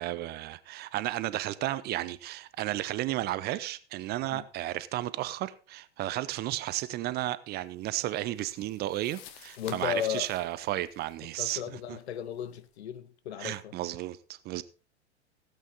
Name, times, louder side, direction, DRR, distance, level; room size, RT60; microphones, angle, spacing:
voice 1, 0.0-11.6 11.9-12.0 13.4-14.6, right 15 dB, 30° right, 0.6 m, -33 dB
sound 1, 7.8-12.7, left 9 dB, 45° left, 1.7 m, -53 dB
voice 2, 9.6-10.3 11.4-13.7, left 10 dB, 65° left, 1.0 m, -35 dB
16.5 x 8.4 x 4.1 m
figure-of-eight pair, 95°, 35 cm